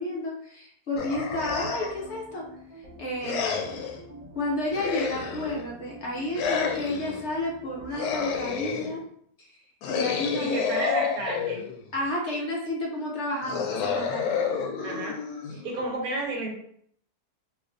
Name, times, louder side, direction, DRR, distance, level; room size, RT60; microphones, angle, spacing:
voice 1, 0.0-2.4 3.0-3.7 4.3-9.0 9.4-9.6 9.9-10.6 11.9-14.5 15.5-15.9, left 1 dB, 55° left, -3 dB, 0.9 m, -31 dB
sound 1, 0.9-8.7, right 1 dB, 40° right, 0.6 m, -47 dB
sound 2, 1.0-2.1 3.2-4.0 4.7-5.7 6.3-7.2 7.9-9.0 9.8-11.9 13.4-15.8, left 6 dB, 90° left, 1.1 m, -30 dB
voice 2, 10.4-11.7 14.8-15.2 15.6-16.5, right 2 dB, 70° right, -1 dB, 1.3 m, -31 dB
2.8 x 2.6 x 3.8 m, 0.66 s
omnidirectional pair, 1.6 m